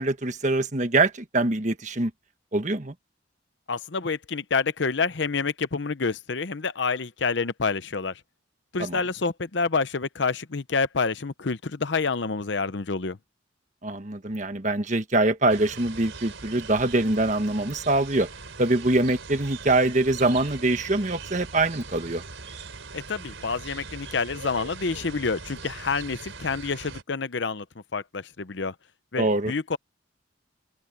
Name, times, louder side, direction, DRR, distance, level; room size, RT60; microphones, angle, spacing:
voice 1, 0.0-2.1 2.5-2.9 8.8-9.0 13.8-18.3 18.6-22.2 29.2-29.5, right 2 dB, 40° right, 1.4 m, -24 dB
voice 2, 3.7-8.2 8.7-13.2 22.9-27.6 27.9-28.7 29.1-29.8, left 4 dB, 65° left, 0.8 m, -28 dB
sound 1, 15.5-27.0, right 4 dB, 90° right, 4.4 m, -41 dB
open air
head